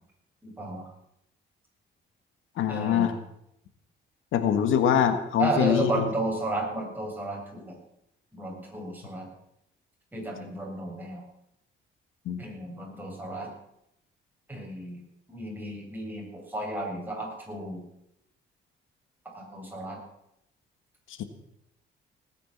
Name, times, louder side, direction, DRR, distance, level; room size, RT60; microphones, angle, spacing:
voice 1, 0.4-0.9 2.7-3.1 5.4-7.8 8.3-9.3 10.1-11.2 12.4-13.5 14.5-15.0 15.3-17.8 19.3-20.0, right 2 dB, 10° right, -1 dB, 7.6 m, -33 dB
voice 2, 2.6-3.1 4.3-6.0 12.2-12.4 21.1-21.2, left 8 dB, 80° left, 9 dB, 1.6 m, -24 dB
18.5 x 10.0 x 7.3 m, 0.81 s
cardioid pair, 90°, 20 cm